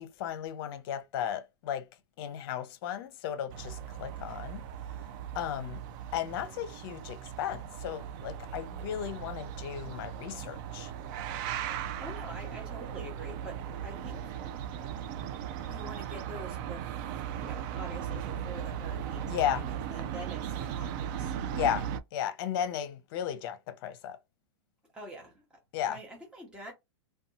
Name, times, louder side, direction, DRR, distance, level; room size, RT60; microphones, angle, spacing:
voice 1, 0.0-1.8 2.2-4.6 5.3-5.8 6.1-10.9 19.3-19.6 21.5-24.2 25.7-26.0, left 10 dB, 50° left, 0.7 m, -35 dB
sound 1, 3.5-22.0, right 9 dB, 45° right, 0.4 m, -38 dB
voice 2, 12.0-14.3 15.7-21.4 24.9-25.6 25.9-26.7, right 1 dB, 5° right, 0.8 m, -46 dB
2.6 x 2.2 x 2.6 m
hypercardioid pair, 130°, 15 cm